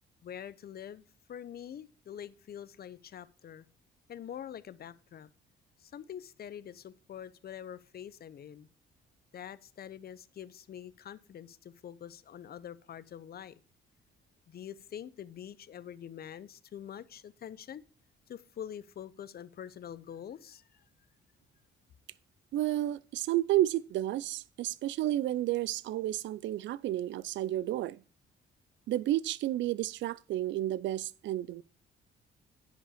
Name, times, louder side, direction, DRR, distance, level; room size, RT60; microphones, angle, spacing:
voice 1, 0.2-1.0 1.3-3.7 4.1-5.3 5.8-8.7 9.3-13.6 14.5-17.8 18.3-20.8, left 9 dB, 50° left, 0.7 m, -45 dB
voice 2, 22.5-28.0 28.9-31.6, right 14 dB, 70° right, 0.4 m, -31 dB
10.0 x 5.2 x 4.9 m
cardioid pair, 90°, 20 cm